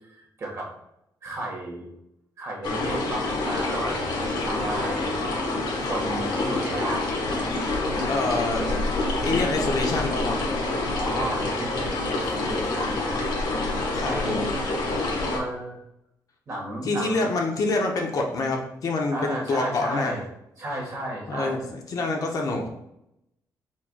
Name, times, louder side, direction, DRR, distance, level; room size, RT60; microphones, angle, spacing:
voice 1, 0.2-0.7 1.2-1.9 2.4-3.9 4.4-5.2 5.8-7.5 7.8-8.4 9.0-9.2 10.9-11.8 12.1-13.2 14.0-14.6 15.3-15.8 16.5-17.3 19.1-20.2 20.6-21.6, right 1 dB, 40° right, -2 dB, 1.5 m, -33 dB
sound 1, 2.6-15.4, left 2 dB, 80° left, 1.1 m, -27 dB
voice 2, 8.1-8.7 9.2-10.4 13.9-14.5 16.8-20.2 21.3-22.7, left 3 dB, 55° left, 1 dB, 0.8 m, -26 dB
4.5 x 4.2 x 2.2 m, 0.81 s
cardioid pair, 105°, 7 cm